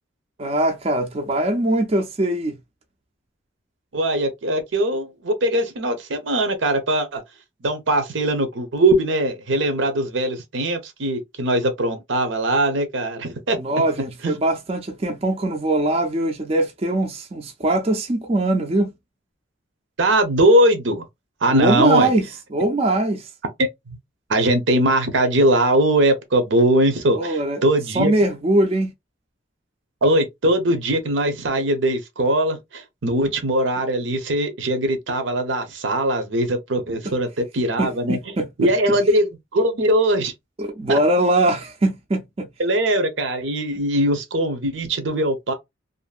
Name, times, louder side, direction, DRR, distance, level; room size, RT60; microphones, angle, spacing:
voice 1, 0.4-2.5 13.6-18.9 21.5-22.3 22.5-23.3 27.1-27.6 27.9-28.9 37.8-39.0 40.6-42.5, right 1 dB, 30° right, 0.4 m, -21 dB
voice 2, 3.9-7.2 7.6-13.6 14.2-14.3 20.0-21.1 21.4-22.1 23.9-24.0 24.3-28.1 30.0-38.2 38.6-40.3 40.9-41.0 42.6-45.5, right 1 dB, 75° right, 0.7 m, -20 dB
2.6 x 2.5 x 2.3 m
head